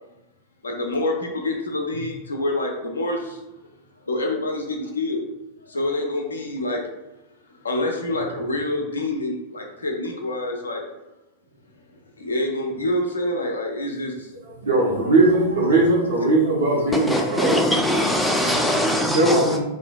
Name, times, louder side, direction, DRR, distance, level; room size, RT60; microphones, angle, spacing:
voice 1, 0.6-3.4 4.1-5.3 5.6-6.8 7.6-10.8 12.2-14.3 16.8-17.4, left 1 dB, 75° left, 0.4 m, -27 dB
voice 2, 14.3-17.6 19.0-19.6, right 2 dB, 65° right, 0.5 m, -19 dB
voice 3, 16.9-19.6, equal, ahead, 0.4 m, -22 dB
2.4 x 2.1 x 2.4 m
figure-of-eight pair, 90°, 0 cm